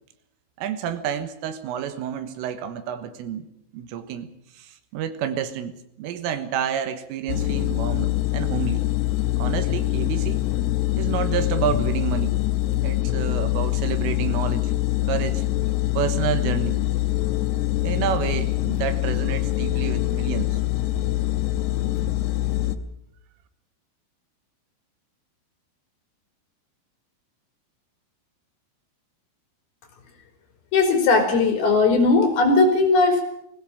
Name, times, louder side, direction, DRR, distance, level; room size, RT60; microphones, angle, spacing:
voice 1, 0.6-3.5 3.7-4.3 4.6-5.7 6.0-8.8 9.4-10.4 11.0-12.3 12.8-14.7 15.1-15.4 16.0-16.8 17.8-20.6, right 9 dB, 80° right, 11 dB, 3.8 m, -29 dB
sound 1, 7.3-22.8, left 16 dB, 75° left, 2.6 m, -24 dB
voice 2, 30.7-33.2, left 3 dB, 50° left, 4 dB, 5.3 m, -18 dB
20.5 x 17.0 x 8.7 m, 0.76 s
omnidirectional pair, 5.9 m